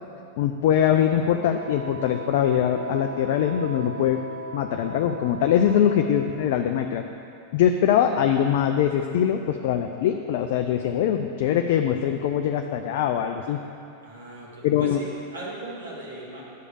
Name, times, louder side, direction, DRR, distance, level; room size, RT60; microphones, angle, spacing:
voice 1, 0.4-4.2 4.5-7.0 7.5-13.6 14.6-15.0, left 9 dB, 50° left, 5 dB, 0.4 m, -22 dB
Wind instrument woodwind instrument, 1.2-6.4, right 1 dB, 40° right, 1.7 m, -38 dB
voice 2, 14.0-16.4, right 2 dB, 70° right, -6 dB, 2.5 m, -38 dB
10.0 x 5.0 x 6.8 m, 2.6 s
figure-of-eight pair, 90°, 0 cm